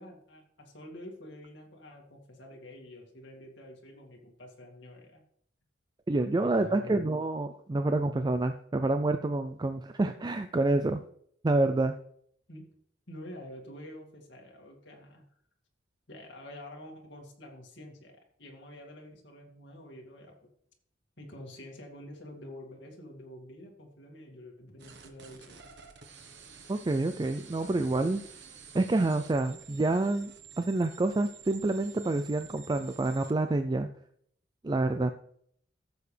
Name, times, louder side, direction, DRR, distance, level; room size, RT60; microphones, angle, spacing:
voice 1, 0.0-5.2 6.4-7.0 12.5-12.7 13.1-15.3 16.1-20.3 21.2-25.6, left 1 dB, 65° left, 0 dB, 2.3 m, -47 dB
voice 2, 6.1-11.0 11.4-11.9 26.7-28.2 28.7-33.9 34.6-35.1, right 2 dB, 20° right, 8 dB, 0.4 m, -28 dB
sound 1, 24.8-33.4, right 7 dB, 65° right, 1.2 m, -51 dB
14.5 x 7.0 x 3.3 m, 0.67 s
head